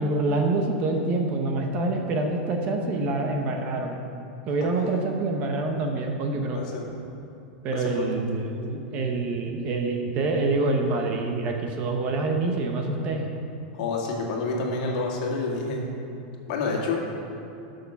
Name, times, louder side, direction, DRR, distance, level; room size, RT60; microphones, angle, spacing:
voice 1, 0.0-4.0 4.5-6.6 7.6-13.3, right 2 dB, 30° right, 3 dB, 0.9 m, -26 dB
voice 2, 6.5-7.0 7.7-8.1 13.7-15.8 16.5-17.0, left 3 dB, 50° left, -1 dB, 2.1 m, -28 dB
12.5 x 6.5 x 5.9 m, 2.9 s
supercardioid pair, 175°, 5 cm